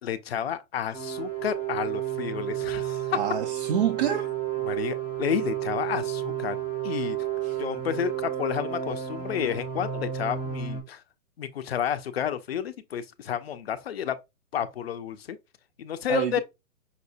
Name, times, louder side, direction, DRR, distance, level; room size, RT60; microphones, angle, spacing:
voice 1, 0.0-3.2 4.7-6.6 6.8-7.2 7.6-11.0 11.4-14.2 14.5-15.4 15.8-16.4, left 9 dB, 45° left, 0.5 m, -31 dB
sound 1, 0.9-10.8, right 10 dB, 5° right, 0.6 m, -31 dB
voice 2, 3.1-4.3 7.4-7.6 16.1-16.4, right 9 dB, 40° right, 0.4 m, -27 dB
5.7 x 2.1 x 2.7 m
hypercardioid pair, 140°, 46 cm